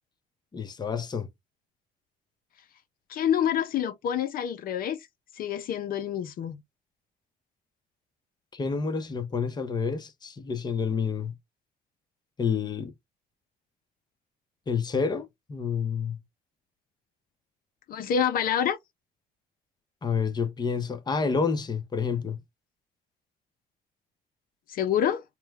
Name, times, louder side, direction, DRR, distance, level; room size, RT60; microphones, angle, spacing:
voice 1, 0.5-1.3 8.5-11.3 12.4-12.9 14.7-16.2 20.0-22.4, left 5 dB, 25° left, 0.7 m, -29 dB
voice 2, 3.1-5.1 5.3-6.6 17.9-18.8 24.7-25.2, left 9 dB, 60° left, 0.6 m, -27 dB
4.4 x 2.1 x 3.4 m
cardioid pair, 110°, 17 cm